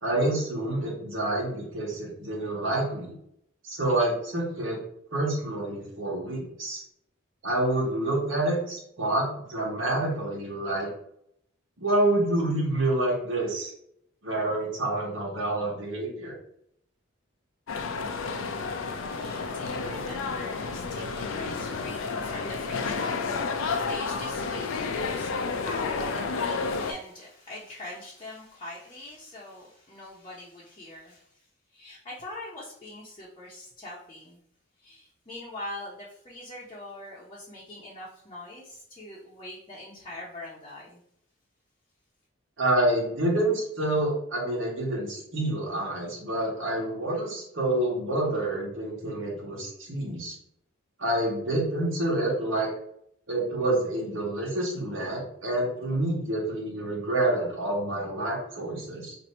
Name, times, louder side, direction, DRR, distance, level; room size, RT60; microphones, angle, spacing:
voice 1, 0.0-3.1 3.6-4.8 5.1-6.8 7.4-10.9 11.8-13.7 14.2-16.3 42.6-50.3 51.0-52.7 53.3-59.1, right 1 dB, 75° right, -4 dB, 1.2 m, -28 dB
sound 1, 17.7-26.9, left 4 dB, 80° left, 0.4 m, -31 dB
voice 2, 19.1-31.5 31.7-34.4 34.8-41.0, left 1 dB, 25° left, -6 dB, 0.7 m, -43 dB
2.8 x 2.6 x 4.1 m, 0.72 s
head